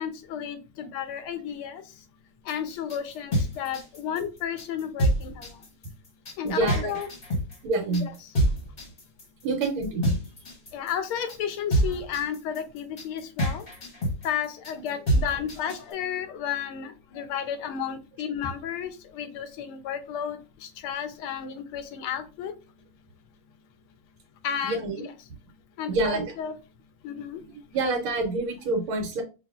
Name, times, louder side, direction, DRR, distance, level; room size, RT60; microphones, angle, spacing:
voice 1, 0.0-1.8 2.5-5.5 6.4-7.1 7.9-8.3 10.7-13.7 14.2-22.5 24.4-25.1 25.8-26.5 27.0-27.4, left 8 dB, 85° left, 9 dB, 1.6 m, -33 dB
sound 1, 2.5-15.9, right 1 dB, 35° left, 1.0 m, -27 dB
voice 2, 6.4-7.0 7.6-8.1 9.4-10.2 24.6-25.0 25.9-26.3 27.7-29.2, right 3 dB, 80° right, 1 dB, 1.6 m, -27 dB
6.6 x 2.4 x 2.3 m, 0.30 s
omnidirectional pair, 2.3 m